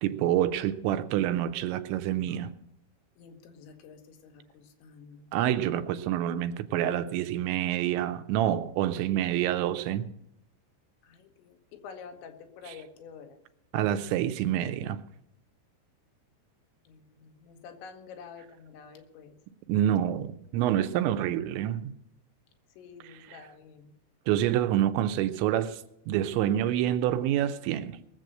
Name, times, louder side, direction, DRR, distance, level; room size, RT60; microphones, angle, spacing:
voice 1, 0.0-2.5 5.3-10.1 12.7-12.8 13.7-15.0 19.7-21.9 23.0-23.4 24.3-25.8 26.1-28.0, right 11 dB, 90° right, 3.1 m, -27 dB
voice 2, 3.2-5.3 11.0-13.4 16.9-19.4 22.8-23.9, left 6 dB, 85° left, 3.6 m, -48 dB
20.0 x 7.6 x 6.5 m
omnidirectional pair, 5.1 m